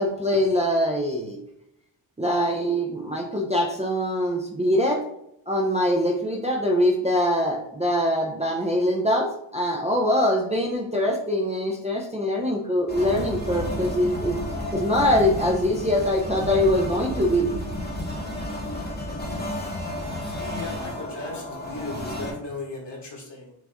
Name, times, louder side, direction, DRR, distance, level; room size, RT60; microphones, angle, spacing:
voice 1, 0.0-1.4 2.2-5.0 5.5-14.4 14.7-17.5, equal, 15° right, -1 dB, 0.5 m, -23 dB
sound 1, 12.9-22.3, left 1 dB, 20° left, 0.9 m, -32 dB
voice 2, 20.1-23.5, left 2 dB, 60° left, -2 dB, 1.6 m, -37 dB
6.2 x 2.4 x 3.5 m, 0.79 s
wide cardioid pair, 100°, 48 cm